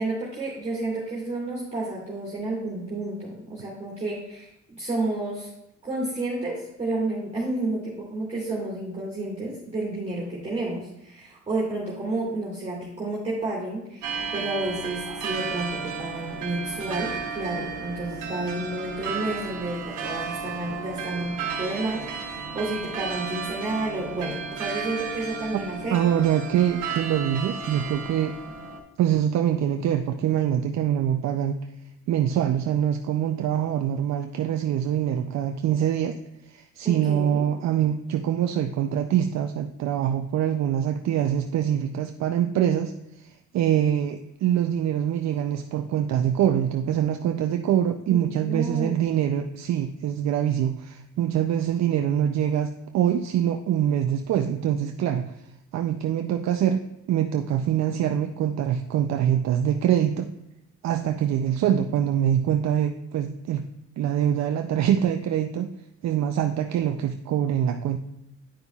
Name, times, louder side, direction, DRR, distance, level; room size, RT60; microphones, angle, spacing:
voice 1, 0.0-5.5 5.8-26.2 36.8-37.5 48.1-49.0, right 2 dB, 20° right, -5 dB, 2.4 m, -31 dB
sound 1, 14.0-28.8, right 5 dB, 85° right, 1.1 m, -33 dB
voice 2, 25.9-28.4 29.0-31.6 32.1-36.2 36.5-42.9 43.2-43.3 43.5-55.3 55.7-56.8 57.1-60.3 60.8-63.6 64.0-65.7 66.0-68.0, right 10 dB, 65° right, 6 dB, 0.5 m, -24 dB
10.0 x 5.3 x 2.3 m, 0.83 s
cardioid pair, 90°, 30 cm